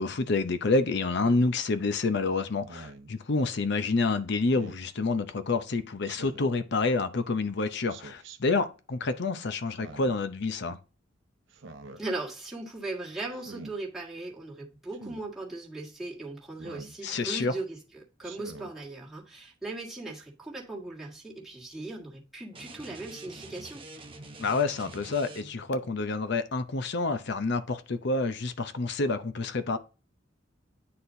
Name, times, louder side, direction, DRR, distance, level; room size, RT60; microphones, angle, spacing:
voice 1, 0.0-10.8 17.0-17.5 24.4-29.8, left 3 dB, 60° left, 0.7 m, -28 dB
Speech synthesizer, 1.1-1.5 2.6-3.1 4.5-4.9 6.0-6.6 7.9-8.4 9.7-10.2 11.5-12.0 13.3-13.7 14.9-15.3 16.6-17.0 18.2-18.7, right 3 dB, 75° right, 0.7 m, -46 dB
voice 2, 12.0-17.8 18.2-23.8, right 2 dB, ahead, 1.6 m, -38 dB
sound 1, 22.5-25.8, right 2 dB, 30° right, 0.9 m, -46 dB
9.5 x 4.3 x 2.7 m
head